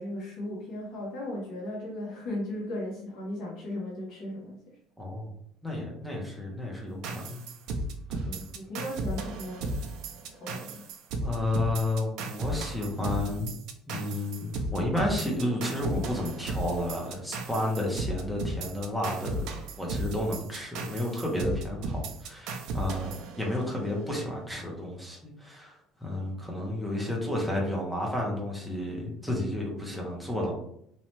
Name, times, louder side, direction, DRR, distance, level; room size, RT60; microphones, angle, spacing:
voice 1, 0.0-4.8 8.2-9.8 10.3-10.8, left 1 dB, 50° left, -5 dB, 0.7 m, -37 dB
voice 2, 5.0-5.3 5.6-7.4 11.2-13.5 13.9-30.5, left 1 dB, ahead, -2 dB, 0.5 m, -32 dB
sound 1, 7.0-23.9, right 2 dB, 50° right, 0.4 m, -35 dB
2.7 x 2.1 x 3.0 m, 0.73 s
cardioid pair, 175°, 0 cm